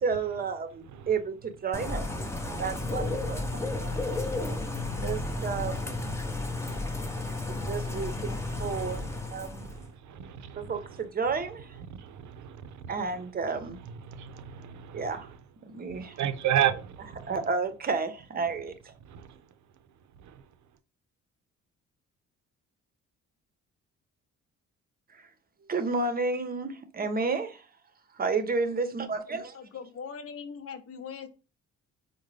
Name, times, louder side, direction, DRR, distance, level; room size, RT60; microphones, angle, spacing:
voice 1, 0.0-2.1 2.6-3.9 5.0-5.8 7.5-9.0 9.3-9.7 10.6-11.7 12.9-13.8 14.9-15.3 15.7-16.2 17.3-18.7 25.1-25.2 25.7-27.6 28.2-29.5, right 4 dB, 30° right, 0.6 m, -31 dB
Bird / Rain, 1.7-9.9, left 2 dB, 10° left, 0.6 m, -33 dB
voice 2, 4.3-5.1 10.1-10.6 12.0-12.6 14.2-14.9 16.2-16.9, right 11 dB, 70° right, 0.5 m, -30 dB
voice 3, 29.5-31.3, left 6 dB, 50° left, 0.7 m, -40 dB
3.8 x 2.1 x 3.1 m
cardioid pair, 90°, 30 cm